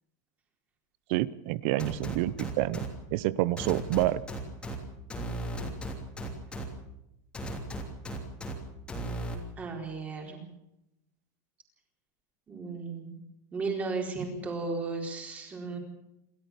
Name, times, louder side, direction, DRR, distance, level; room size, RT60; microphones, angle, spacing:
voice 1, 1.1-4.2, right 16 dB, 45° right, 19 dB, 0.7 m, -28 dB
sound 1, 1.8-2.9 3.6-4.8 5.1-6.6 7.3-8.5 8.9-9.4, right 1 dB, 10° left, 3.1 m, -36 dB
voice 2, 9.6-10.4 12.5-13.1 13.5-15.8, right 4 dB, 15° right, 2 dB, 4.4 m, -35 dB
28.0 x 13.5 x 7.1 m, 0.85 s
supercardioid pair, 175°, 10 cm